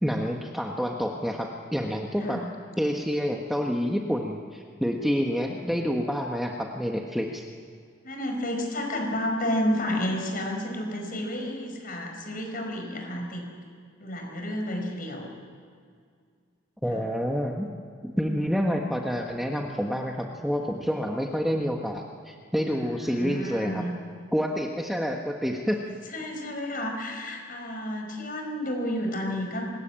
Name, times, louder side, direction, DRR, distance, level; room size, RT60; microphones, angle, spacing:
voice 1, 0.0-2.4 2.8-7.5 16.8-17.7 18.0-23.8 24.3-25.8, equal, ahead, 1 dB, 1.3 m, -28 dB
voice 2, 8.0-13.5 14.0-15.3 16.9-17.0 22.7-23.9 25.9-29.7, left 1 dB, 45° left, 3 dB, 5.3 m, -31 dB
25.0 x 20.5 x 8.9 m, 2.2 s
head